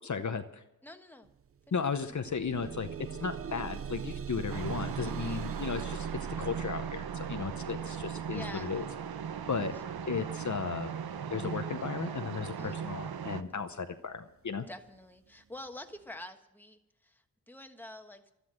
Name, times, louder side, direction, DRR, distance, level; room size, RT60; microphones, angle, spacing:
voice 1, 0.0-0.6 1.7-2.9 3.2-6.1 6.4-8.8 9.5-9.8 10.1-10.9 11.3-14.7, left 5 dB, 50° left, 8 dB, 0.8 m, -35 dB
voice 2, 0.8-1.3 1.7-1.8 2.1-2.2 5.0-5.5 8.3-8.8 9.7-9.8 12.6-12.8 14.7-18.3, left 1 dB, 5° left, 5 dB, 1.2 m, -47 dB
sound 1, 1.3-1.4 1.8-12.8 13.6-13.7 14.2-14.3, right 8 dB, 40° right, 0.4 m, -43 dB
sound 2, 4.5-13.4, right 7 dB, 90° right, 0.7 m, -38 dB
13.0 x 11.5 x 7.6 m, 0.92 s
wide cardioid pair, 105°, 36 cm